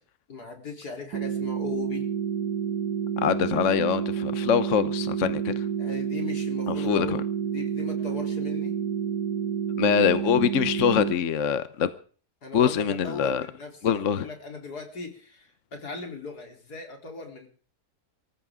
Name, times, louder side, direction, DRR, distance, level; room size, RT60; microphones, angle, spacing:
voice 1, 0.3-2.1 5.8-8.8 12.4-17.5, left 4 dB, 85° left, 4.2 m, -39 dB
sound 1, 1.1-11.1, right 8 dB, 85° right, 1.7 m, -29 dB
voice 2, 3.2-5.7 6.7-7.2 9.8-11.9 12.5-13.4 13.8-14.3, left 8 dB, 55° left, 1.2 m, -24 dB
24.5 x 14.5 x 3.7 m
omnidirectional pair, 1.6 m